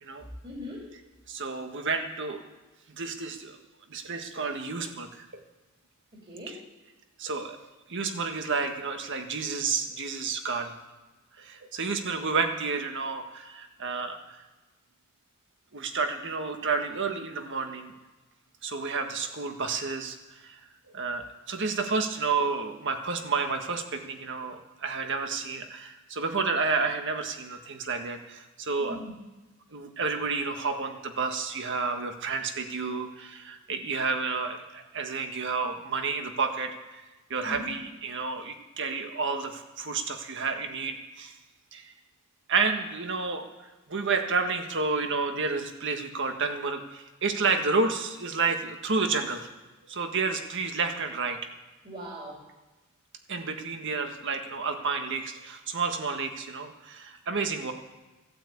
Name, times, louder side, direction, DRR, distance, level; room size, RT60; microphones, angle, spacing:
voice 1, 0.4-0.9 6.3-6.6 28.8-29.1 37.5-37.8 51.8-52.4, left 1 dB, 30° right, -3 dB, 3.5 m, -40 dB
voice 2, 1.3-2.4 3.0-3.6 3.9-5.2 6.5-6.6 7.2-7.6 7.9-10.8 11.4-14.2 15.7-17.9 18.6-20.2 20.4-20.6 20.9-29.0 29.7-37.0 37.3-41.3 41.7-41.9 42.5-43.5 43.9-49.5 49.9-51.4 53.3-57.7, right 4 dB, 55° right, 5 dB, 1.6 m, -30 dB
15.0 x 8.7 x 8.5 m, 1.2 s
head